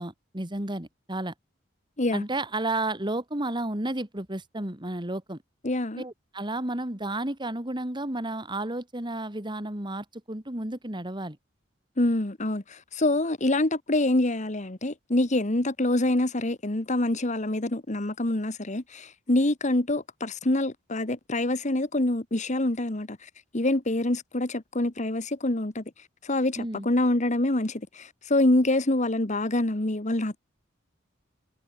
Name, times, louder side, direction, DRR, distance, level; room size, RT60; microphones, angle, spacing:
voice 1, 0.0-1.3 2.1-5.4 6.0-11.4 26.6-26.9, right 1 dB, 25° right, 2.8 m, -32 dB
voice 2, 5.6-6.0 12.0-25.8 26.2-30.4, left 1 dB, 40° left, 1.6 m, -26 dB
head